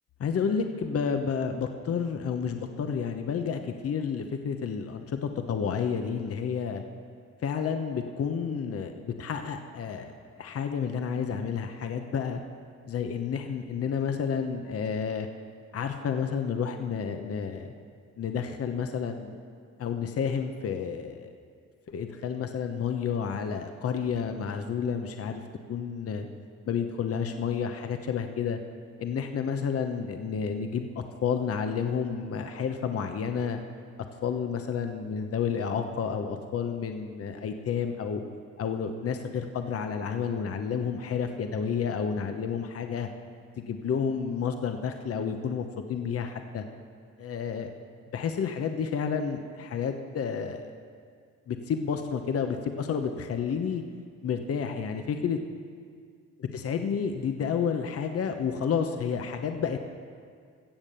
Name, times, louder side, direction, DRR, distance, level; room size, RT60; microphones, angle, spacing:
voice 1, 0.2-6.8 7.4-12.4 12.9-15.3 15.7-17.7 18.2-19.4 19.8-21.3 21.9-25.4 25.7-26.3 26.7-28.6 29.0-33.6 34.2-38.2 38.6-43.1 43.6-46.6 47.2-47.7 48.1-50.7 51.5-53.8 54.2-55.4 56.4-59.8, left 6 dB, 50° left, 6 dB, 0.9 m, -30 dB
16.0 x 7.4 x 6.8 m, 2.1 s
cardioid pair, 90°, 30 cm